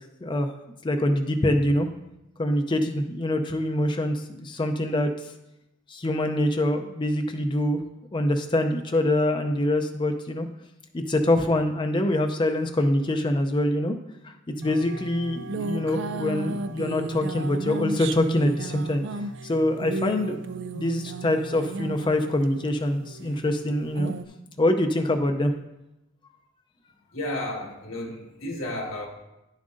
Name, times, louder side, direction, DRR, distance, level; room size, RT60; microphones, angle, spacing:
voice 1, 0.2-0.5 0.8-1.9 2.4-5.1 5.9-7.8 8.1-10.5 10.9-14.0 14.2-14.3 14.6-19.0 19.4-20.4 20.7-24.1 24.6-25.5, left 1 dB, 25° left, 5 dB, 0.5 m, -24 dB
sound 1, 14.6-24.2, right 2 dB, 65° right, 0.4 m, -35 dB
voice 2, 27.1-29.1, left 1 dB, 85° left, -1 dB, 1.6 m, -32 dB
10.5 x 7.2 x 2.6 m, 0.92 s
head